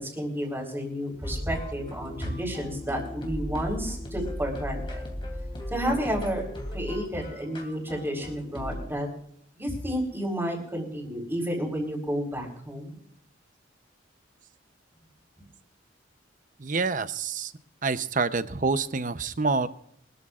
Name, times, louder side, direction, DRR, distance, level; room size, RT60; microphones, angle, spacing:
voice 1, 0.0-5.1 5.7-6.4 6.7-9.1 9.6-12.9, equal, 10° right, 0 dB, 4.2 m, -31 dB
sound 1, 1.2-8.9, left 1 dB, 25° left, 3.0 m, -37 dB
voice 2, 16.6-17.5 17.8-19.7, right 4 dB, 45° right, 12 dB, 0.7 m, -27 dB
24.5 x 13.5 x 2.5 m, 0.70 s
head